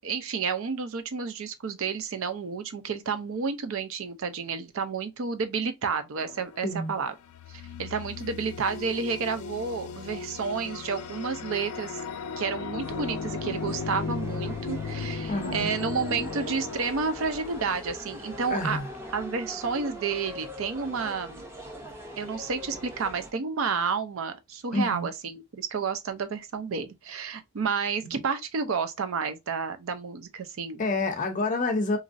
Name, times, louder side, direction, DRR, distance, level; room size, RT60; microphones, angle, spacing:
voice 1, 0.0-7.1 7.5-11.9 12.4-18.8 19.1-21.4 22.2-30.8, right 5 dB, 65° right, 0.5 m, -31 dB
sound 1, 6.2-6.7 7.2-17.9, left 5 dB, 85° left, 0.4 m, -36 dB
voice 2, 6.6-6.9 15.3-15.8 18.5-18.9 24.7-25.1 28.0-28.2 30.8-32.0, left 2 dB, 35° left, 0.5 m, -28 dB
sound 2, 12.8-23.3, equal, 10° right, 0.5 m, -42 dB
3.0 x 2.5 x 2.5 m
head